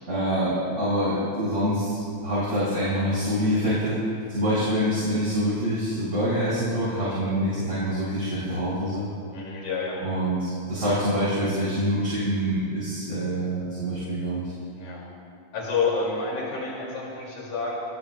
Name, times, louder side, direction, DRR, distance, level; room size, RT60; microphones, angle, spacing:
voice 1, 0.1-4.0 4.3-9.0 10.0-14.4, equal, 25° right, -9 dB, 4.4 m, -25 dB
voice 2, 9.3-10.0 14.8-15.0 15.5-17.7, left 4 dB, 75° left, -4 dB, 3.8 m, -29 dB
28.5 x 19.0 x 2.2 m, 2.3 s
omnidirectional pair, 3.5 m